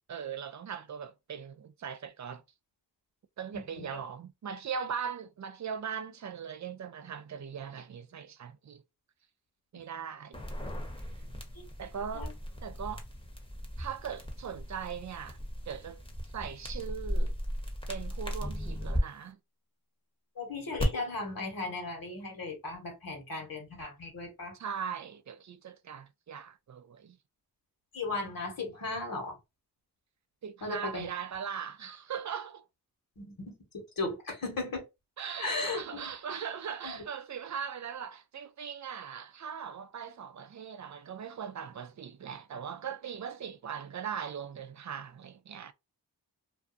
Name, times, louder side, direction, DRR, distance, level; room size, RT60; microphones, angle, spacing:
voice 1, 0.1-2.4 3.4-8.8 9.7-10.4 11.8-12.3 12.6-13.0 13.8-15.4 15.7-16.0 16.3-17.3 17.9-19.4 24.5-27.2 30.4-32.6 35.2-45.7, right 7 dB, 45° right, 0.5 m, -40 dB
voice 2, 3.5-4.0 11.5-11.6 12.1-12.3 20.4-24.6 27.9-29.4 30.6-31.1 33.2-34.8 35.4-36.1 36.8-37.0, left 3 dB, 55° left, 1.5 m, -36 dB
sound 1, 10.3-19.0 20.8-20.9, equal, 15° left, 1.0 m, -37 dB
2.7 x 2.3 x 2.5 m
cardioid pair, 45°, 40 cm